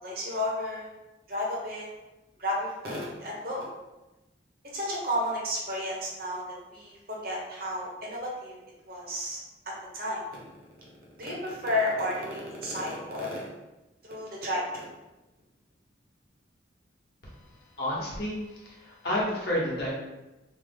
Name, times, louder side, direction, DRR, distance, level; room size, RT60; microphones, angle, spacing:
voice 1, 0.0-0.9 1.3-1.9 2.4-3.7 4.7-6.4 6.7-8.5 8.9-9.4 9.9-10.2 11.2-13.5 14.0-14.9, left 1 dB, 50° right, -3 dB, 0.8 m, -32 dB
voice 2, 17.8-19.9, left 1 dB, 55° left, -5 dB, 1.0 m, -30 dB
3.2 x 2.0 x 3.4 m, 1.0 s
head